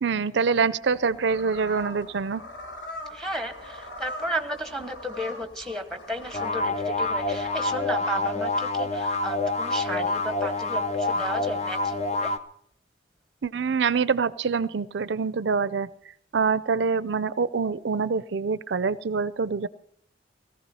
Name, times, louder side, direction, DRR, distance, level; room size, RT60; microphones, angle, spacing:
voice 1, 0.0-2.4 13.4-15.9 16.3-19.7, right 5 dB, 65° right, 16 dB, 0.5 m, -25 dB
sound 1, 0.8-7.8, left 1 dB, 65° left, 4.0 m, -42 dB
voice 2, 3.1-12.3, right 1 dB, 5° left, 7 dB, 1.0 m, -33 dB
sound 2, 6.3-12.4, left 2 dB, 35° left, 0.7 m, -27 dB
17.5 x 14.5 x 4.2 m, 0.66 s
head